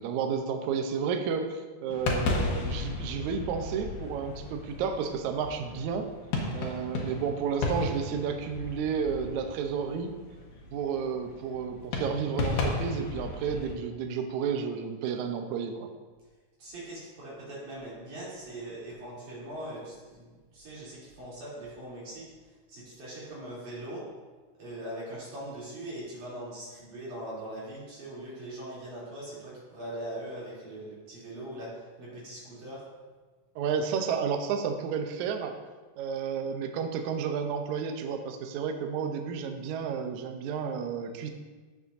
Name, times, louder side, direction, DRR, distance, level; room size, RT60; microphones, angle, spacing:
voice 1, 0.0-6.1 6.5-10.1 10.7-15.9 33.6-35.5 36.0-41.3, right 6 dB, 75° right, 5 dB, 1.8 m, -31 dB
sound 1, 1.9-13.8, left 3 dB, 70° left, 2.6 m, -34 dB
voice 2, 16.6-20.3 20.5-22.3 22.7-24.1 24.6-32.8, right 1 dB, 60° right, -8 dB, 4.6 m, -41 dB
14.5 x 7.1 x 2.7 m, 1.3 s
omnidirectional pair, 4.0 m